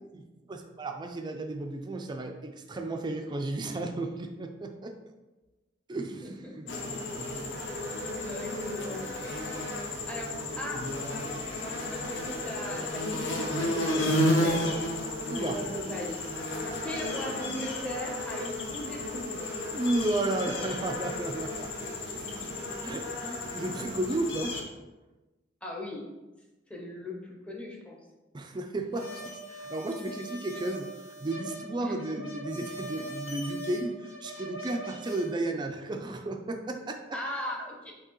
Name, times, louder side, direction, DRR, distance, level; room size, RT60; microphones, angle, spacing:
voice 1, 0.0-5.0 5.9-7.5 15.3-15.6 19.7-21.9 22.4-24.6 28.3-37.2, right 2 dB, 25° right, 5 dB, 0.4 m, -34 dB
voice 2, 6.2-6.7 8.2-9.1 9.8-14.8 15.4-16.3 16.8-19.6 22.1-22.6 25.6-26.1 26.7-28.0 31.8-32.2 37.1-37.9, left 1 dB, 5° left, -1 dB, 0.7 m, -39 dB
sound 1, 6.7-24.6, left 1 dB, 70° left, 0.8 m, -32 dB
sound 2, 28.9-35.3, equal, 85° left, 1.4 m, -42 dB
5.8 x 2.9 x 3.0 m, 1.1 s
head